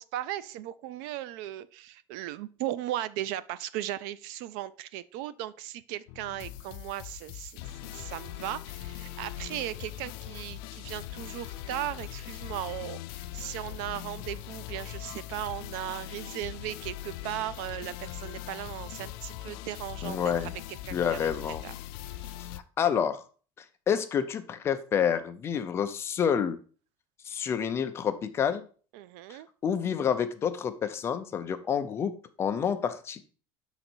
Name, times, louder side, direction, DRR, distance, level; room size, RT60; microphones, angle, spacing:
voice 1, 0.0-21.3 21.6-21.7 22.0-22.3 28.9-29.5, right 13 dB, 70° right, 17 dB, 0.4 m, -37 dB
sound 1, 6.1-22.6, left 13 dB, 85° left, 0.4 m, -41 dB
voice 2, 20.0-20.5 20.9-21.6 22.8-23.2 23.9-26.6 27.3-28.6 29.6-32.1 32.4-33.2, left 8 dB, 20° left, 9 dB, 0.4 m, -28 dB
6.3 x 4.0 x 4.3 m, 0.40 s
cardioid pair, 175°, 12 cm